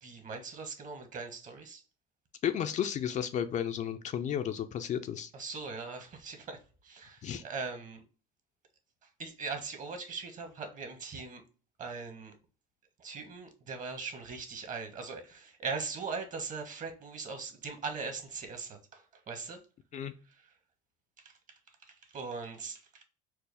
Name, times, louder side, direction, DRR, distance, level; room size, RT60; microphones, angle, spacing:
voice 1, 0.0-1.8 5.3-8.0 9.2-11.4 11.8-12.3 13.0-19.6 20.3-20.5 21.2-23.0, right 4 dB, 45° right, 1.1 m, -40 dB
voice 2, 2.4-5.3 7.2-7.4 19.9-20.1, left 9 dB, 40° left, 0.4 m, -33 dB
4.5 x 2.0 x 3.3 m
supercardioid pair, 90°, 19 cm